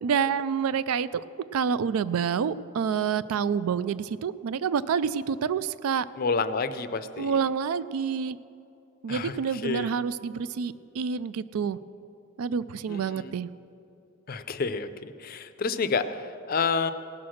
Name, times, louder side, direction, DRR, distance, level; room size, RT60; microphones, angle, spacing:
voice 1, 0.0-1.2 1.5-6.1 7.2-8.4 9.0-11.8 12.4-13.5, right 6 dB, 75° right, 16 dB, 0.3 m, -28 dB
voice 2, 6.2-7.4 9.1-9.9 12.9-13.3 14.3-16.9, left 4 dB, 40° left, 12 dB, 0.4 m, -29 dB
17.5 x 6.0 x 6.3 m, 2.8 s
head